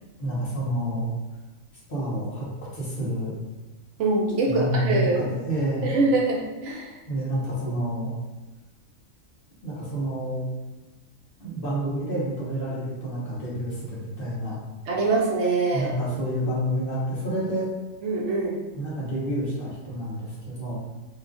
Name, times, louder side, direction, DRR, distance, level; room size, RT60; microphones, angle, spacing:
voice 1, 0.2-1.1 1.9-2.5 2.7-3.3 4.5-5.9 7.1-8.1 9.6-10.4 11.4-14.6 15.7-17.7 18.7-20.9, equal, 45° left, -7 dB, 1.1 m, -28 dB
voice 2, 4.0-5.3 5.8-7.0 14.9-15.9 18.0-18.6, right 3 dB, 70° right, -2 dB, 0.9 m, -24 dB
3.0 x 2.3 x 3.7 m, 1.2 s
omnidirectional pair, 1.3 m